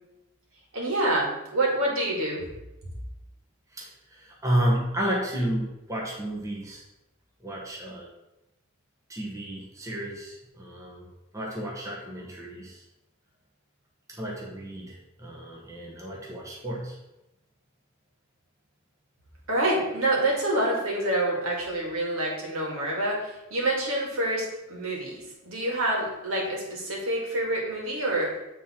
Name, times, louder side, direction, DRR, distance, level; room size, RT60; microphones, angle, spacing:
voice 1, 0.7-2.4 19.5-28.3, right 1 dB, 80° right, -2 dB, 2.1 m, -27 dB
voice 2, 3.7-6.8 7.4-8.1 9.1-12.8 14.1-17.0, right 1 dB, 15° right, -4 dB, 1.1 m, -32 dB
8.1 x 3.6 x 4.3 m, 0.95 s
head